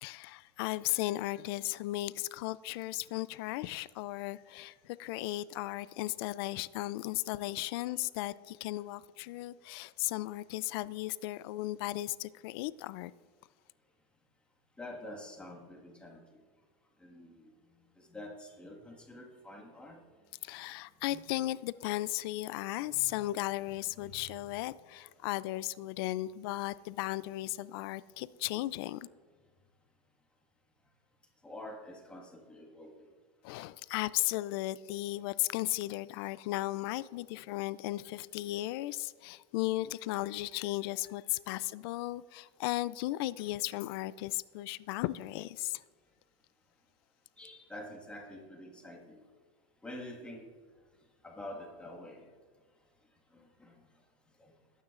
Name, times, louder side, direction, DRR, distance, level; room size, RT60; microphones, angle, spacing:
voice 1, 0.0-13.1 20.4-29.1 33.4-45.8, left 17 dB, 55° left, 0.4 m, -36 dB
voice 2, 7.4-7.7 14.8-16.2 17.0-17.5 18.0-20.0 21.1-21.3 22.9-23.2 23.7-24.3 24.9-25.1 31.4-33.1 47.4-49.2 49.8-50.5 51.2-52.2 53.3-53.8 54.4-54.5, left 1 dB, 5° left, 1.7 m, -47 dB
19.5 x 9.3 x 2.5 m
supercardioid pair, 155°, 15 cm